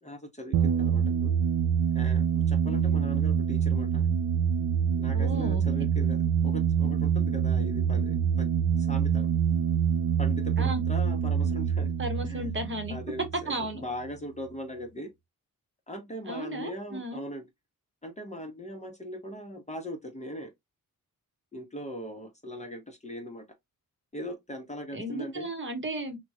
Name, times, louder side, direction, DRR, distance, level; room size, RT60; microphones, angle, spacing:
voice 1, 0.0-1.3 1.9-4.1 5.0-6.2 6.4-8.5 8.8-9.3 10.2-11.9 12.3-12.5 12.9-15.1 15.9-17.5 18.0-20.5 21.5-23.5 24.1-25.5, equal, 20° left, 0.8 m, -40 dB
sound 1, 0.5-13.7, right 7 dB, 75° right, 0.5 m, -26 dB
voice 2, 5.1-5.6 10.6-10.8 12.0-13.0 13.5-13.8 16.3-17.2 24.9-26.2, right 1 dB, 30° right, 1.0 m, -34 dB
2.9 x 2.2 x 2.6 m
cardioid pair, 60°, 37 cm